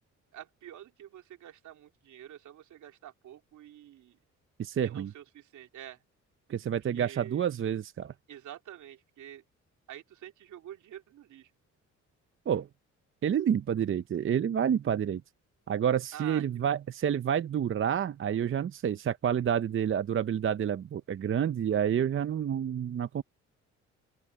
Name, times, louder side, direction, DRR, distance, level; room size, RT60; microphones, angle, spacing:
voice 1, 0.3-4.2 4.8-6.0 6.9-7.4 8.3-9.4 9.9-11.5 16.1-16.7, right 11 dB, 75° right, 3.0 m, -47 dB
voice 2, 4.6-5.1 6.5-8.1 12.5-12.7 13.2-15.2 15.7-23.2, right 9 dB, 45° right, 0.7 m, -29 dB
open air
cardioid pair, 90°, 30 cm